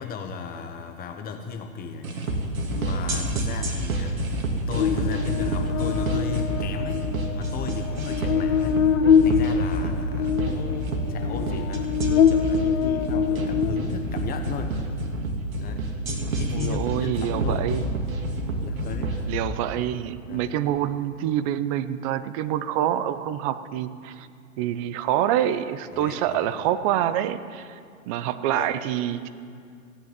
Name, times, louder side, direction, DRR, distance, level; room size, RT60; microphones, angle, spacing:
voice 1, 0.0-2.2 2.7-8.8 9.2-14.7 15.6-16.0 16.3-17.7 18.6-19.2 20.3-20.6 25.9-26.6 28.5-28.8, left 6 dB, 20° left, 5 dB, 1.0 m, -36 dB
sound 1, 2.0-19.2, right 1 dB, 75° right, 2.8 m, -28 dB
Buzz, 4.8-14.2, left 7 dB, 65° left, 1.3 m, -24 dB
voice 2, 16.5-17.8 19.3-24.3 24.6-27.8 28.1-29.3, right 11 dB, 25° right, 13 dB, 0.5 m, -26 dB
16.0 x 9.5 x 8.8 m, 2.3 s
hypercardioid pair, 130°, 43 cm